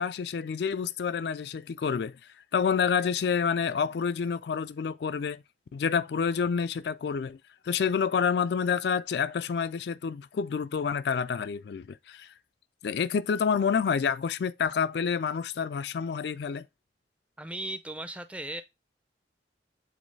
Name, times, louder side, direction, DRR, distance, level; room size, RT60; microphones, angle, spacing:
voice 1, 0.0-2.2 2.5-5.4 5.7-7.4 7.6-12.3 12.8-16.7, left 6 dB, 60° left, 0.3 m, -28 dB
voice 2, 17.4-18.6, right 1 dB, 5° right, 0.5 m, -37 dB
7.5 x 4.0 x 3.2 m
head